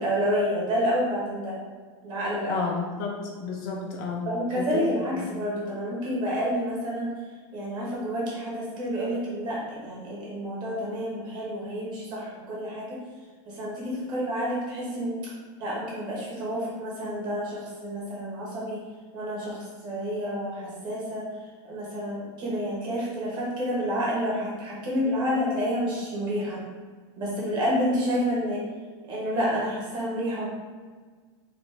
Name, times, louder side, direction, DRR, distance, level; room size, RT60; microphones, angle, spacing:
voice 1, 0.0-1.5 2.0-2.7 4.2-7.1 7.5-13.0 13.4-15.1 15.6-18.8 19.1-21.3 21.6-26.6 27.2-28.6 29.0-30.5, equal, 30° right, -5 dB, 1.2 m, -29 dB
voice 2, 2.5-4.2 4.6-4.8 5.1-5.3, left 5 dB, 40° left, 0 dB, 0.5 m, -31 dB
4.1 x 2.5 x 3.3 m, 1.5 s
supercardioid pair, 170°, 16 cm